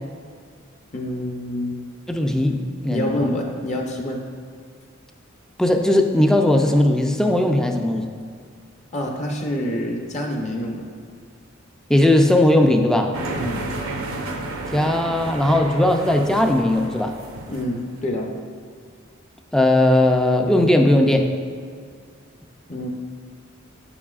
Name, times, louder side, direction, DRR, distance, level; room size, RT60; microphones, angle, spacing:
voice 1, 0.9-1.8 2.9-4.2 8.9-10.9 13.3-13.6 17.5-18.3 22.7-22.9, left 1 dB, 35° left, 1 dB, 0.7 m, -27 dB
voice 2, 2.1-3.3 5.6-8.1 11.9-13.2 14.7-17.1 19.5-21.3, left 1 dB, 5° left, 4 dB, 0.3 m, -18 dB
sound 1, 13.1-18.0, right 2 dB, 80° right, 0.7 m, -31 dB
7.7 x 7.1 x 2.4 m, 2.1 s
head